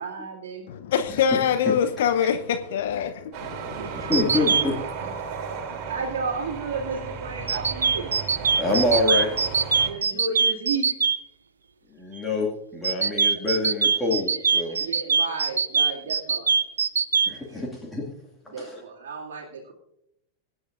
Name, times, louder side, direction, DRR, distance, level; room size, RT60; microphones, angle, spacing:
voice 1, 0.0-0.7 3.8-5.1 5.5-8.1 9.8-10.9 12.1-12.3 13.3-13.4 14.8-16.5 18.5-19.7, right 4 dB, 55° right, 2.4 m, -33 dB
voice 2, 0.7-4.1, left 7 dB, 55° left, 0.8 m, -25 dB
sound 1, 3.3-9.9, right 5 dB, 35° right, 3.1 m, -35 dB
voice 3, 4.0-4.7 8.5-9.3 12.0-14.8 17.3-18.0 18.6-18.8, left 2 dB, 10° left, 2.2 m, -26 dB
sound 2, 4.1-4.6 7.5-11.2 12.8-17.3, right 6 dB, 70° right, 0.6 m, -22 dB
24.0 x 9.8 x 2.5 m
figure-of-eight pair, 90°, 0 cm